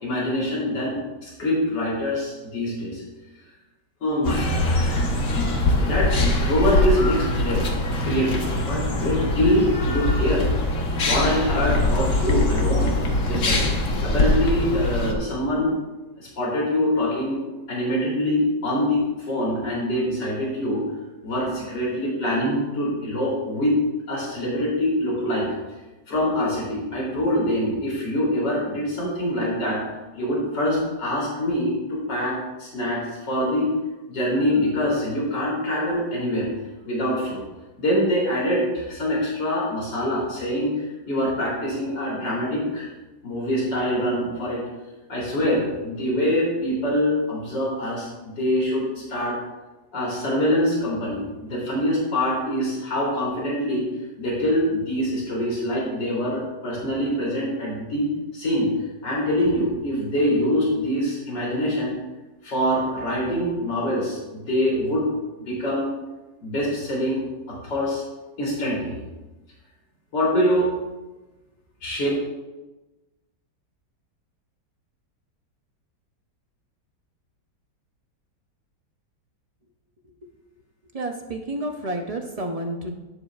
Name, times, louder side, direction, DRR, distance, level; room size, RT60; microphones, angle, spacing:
voice 1, 0.0-3.0 4.0-5.2 5.8-6.1 6.4-10.5 11.0-13.7 14.0-15.8 16.2-17.4 17.7-20.8 21.2-23.8 24.1-25.5 26.1-29.8 30.1-33.7 34.1-36.5 36.9-37.4 37.8-42.9 43.2-44.6 45.1-49.4 49.9-53.9 54.2-58.7 59.0-61.9 62.4-65.1 65.5-65.9 66.4-68.0 68.4-69.0 70.1-70.7 71.8-72.1, equal, 80° left, -5 dB, 3.9 m, -24 dB
sound 1, 4.2-15.1, left 2 dB, 50° left, 1.4 m, -22 dB
voice 2, 80.9-82.9, right 1 dB, 50° right, 3 dB, 0.4 m, -30 dB
12.0 x 9.7 x 2.4 m, 1.1 s
omnidirectional pair, 1.9 m